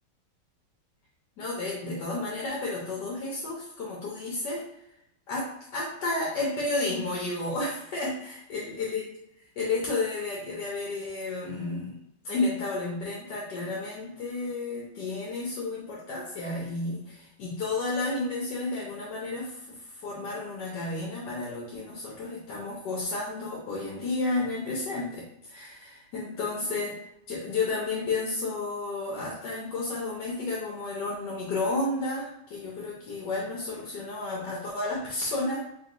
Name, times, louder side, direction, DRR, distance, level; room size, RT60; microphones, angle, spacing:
voice 1, 1.4-4.6 5.3-9.0 9.6-12.0 12.2-35.6, left 2 dB, 65° left, -4 dB, 1.2 m, -32 dB
3.5 x 2.7 x 3.8 m, 0.81 s
omnidirectional pair, 2.3 m